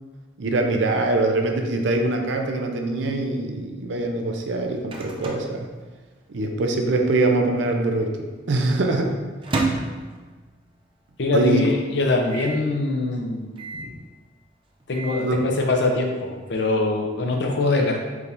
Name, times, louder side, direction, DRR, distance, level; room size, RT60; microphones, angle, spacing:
voice 1, 0.4-5.7 6.3-8.2 8.5-9.1 11.3-11.7 15.2-15.4, right 2 dB, 75° right, 3 dB, 0.5 m, -23 dB
Microwave oven, 4.3-6.5 6.7-6.8 7.0-7.6 8.1-10.8 11.2-11.3 11.5-11.6 12.2-12.7 13.6-14.0 14.6-15.3, right 3 dB, 30° right, 0.4 m, -32 dB
voice 2, 11.2-13.9 14.9-18.0, left 2 dB, 65° left, 1 dB, 0.6 m, -23 dB
4.7 x 2.6 x 3.4 m, 1.3 s
head